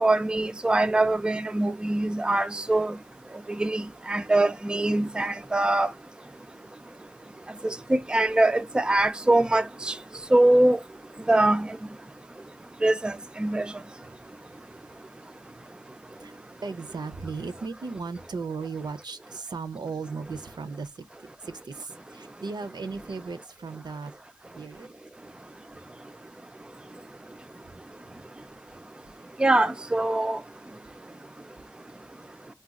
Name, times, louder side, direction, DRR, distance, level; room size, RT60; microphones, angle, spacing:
voice 1, 0.0-2.9 3.6-3.8 4.1-5.9 7.6-9.9 10.3-10.8 11.3-11.7 12.8-13.1 13.4-13.7 29.4-30.4, right 2 dB, 10° right, 0.3 m, -23 dB
voice 2, 16.2-21.0 21.4-24.1 24.5-24.9, right 4 dB, 60° right, 0.5 m, -36 dB
4.0 x 2.3 x 2.4 m
wide cardioid pair, 90°, 8 cm